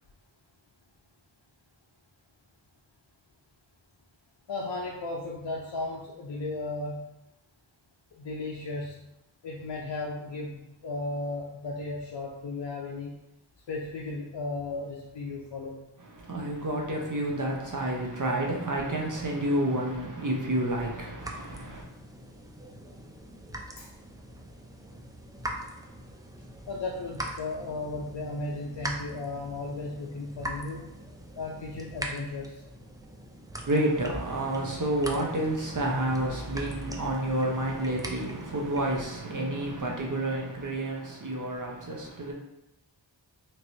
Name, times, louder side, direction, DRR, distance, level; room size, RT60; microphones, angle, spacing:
voice 1, 4.5-7.1 8.1-9.1 9.4-13.2 13.7-15.9 23.8-23.9 26.7-31.0 31.3-32.7, left 2 dB, 65° left, 0.5 m, -35 dB
voice 2, 16.1-21.8 33.7-42.3, right 1 dB, 45° right, 0.6 m, -29 dB
sound 1, 21.2-39.0, right 1 dB, 10° right, 0.3 m, -41 dB
3.0 x 2.9 x 2.7 m
wide cardioid pair, 45°, 46 cm